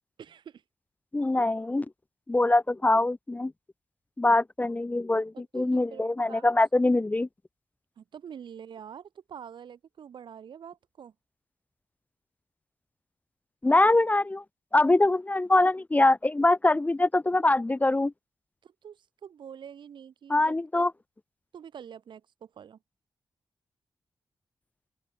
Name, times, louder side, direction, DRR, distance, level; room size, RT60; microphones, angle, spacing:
voice 1, 0.2-0.6 5.5-6.4 8.0-11.1 18.6-20.9 21.5-22.8, right 8 dB, 75° right, 2.4 m, -46 dB
voice 2, 1.1-1.9 2.3-3.5 4.2-7.3 13.6-14.4 14.7-18.1 20.3-20.9, left 2 dB, 20° left, 0.4 m, -23 dB
open air
supercardioid pair, 45°, 8 cm